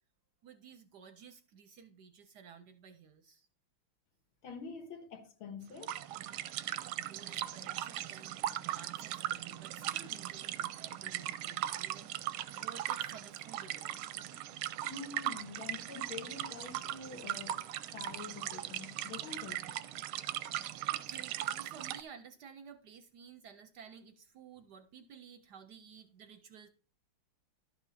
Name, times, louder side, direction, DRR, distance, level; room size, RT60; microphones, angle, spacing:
voice 1, 0.4-3.5 6.7-14.0 20.6-26.7, right 6 dB, 70° right, 1.0 m, -54 dB
voice 2, 4.4-5.9 14.8-19.6, left 4 dB, 80° left, 2.3 m, -46 dB
sound 1, 5.8-22.0, right 13 dB, 90° right, 1.5 m, -39 dB
12.0 x 6.0 x 4.1 m
omnidirectional pair, 2.3 m